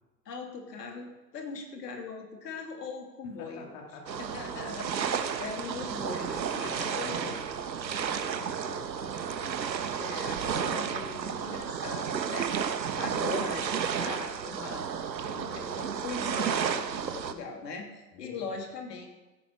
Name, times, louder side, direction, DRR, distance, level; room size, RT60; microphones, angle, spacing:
voice 1, 0.2-3.7 4.2-7.4 10.0-14.8 15.4-19.1, left 4 dB, 70° left, 2 dB, 3.0 m, -40 dB
voice 2, 3.4-4.3 5.4-6.1 6.5-7.3 7.8-9.1 9.4-9.7 12.8-13.1 15.2-15.6 18.1-18.4, left 4 dB, 55° left, 1 dB, 2.4 m, -48 dB
sound 1, 4.1-17.3, right 7 dB, 85° right, 1.3 m, -32 dB
16.0 x 11.0 x 4.7 m, 1.1 s
hypercardioid pair, 105°, 50 cm